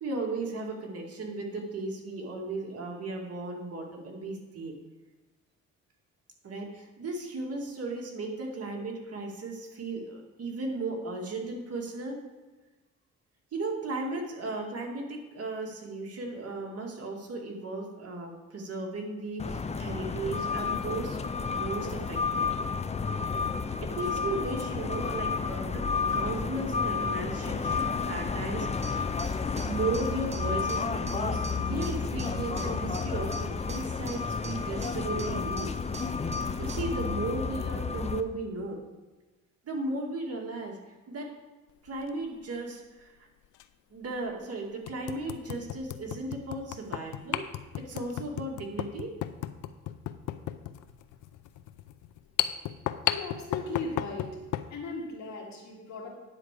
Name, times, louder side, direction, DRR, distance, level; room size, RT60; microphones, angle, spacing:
voice 1, 0.0-4.7 6.4-12.2 13.5-22.5 23.8-25.9 26.1-29.2 29.6-35.7 36.6-38.8 39.6-40.8 41.1-41.3 41.8-43.1 43.9-47.4 47.7-49.1, right 2 dB, 50° right, 0 dB, 2.1 m, -35 dB
sound 1, 19.4-38.2, left 5 dB, 20° left, 0.5 m, -31 dB
sound 2, 28.8-37.0, right 3 dB, 20° right, 1.3 m, -44 dB
sound 3, 41.9-42.1 43.5-43.6 44.2-44.3 44.9-54.7, left 13 dB, 90° left, 0.6 m, -34 dB
voice 2, 53.0-54.4 54.7-56.1, left 3 dB, 65° left, -1 dB, 2.5 m, -37 dB
9.9 x 4.7 x 6.7 m, 1.2 s
cardioid pair, 90°, 30 cm